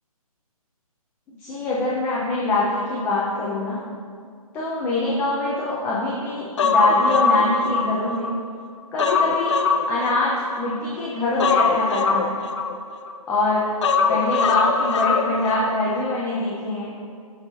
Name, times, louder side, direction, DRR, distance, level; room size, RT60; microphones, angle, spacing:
voice 1, 1.4-3.8 4.5-8.3 8.9-9.5 9.9-12.3 13.3-13.6 14.1-16.9, left 2 dB, 10° left, -7 dB, 0.7 m, -24 dB
Human voice, 6.6-8.4 8.7-10.8 11.4-13.2 13.8-15.7 16.0-16.2, left 5 dB, 50° left, 0.6 m, -22 dB
14.0 x 5.8 x 2.7 m, 2.2 s
hypercardioid pair, 155°, 19 cm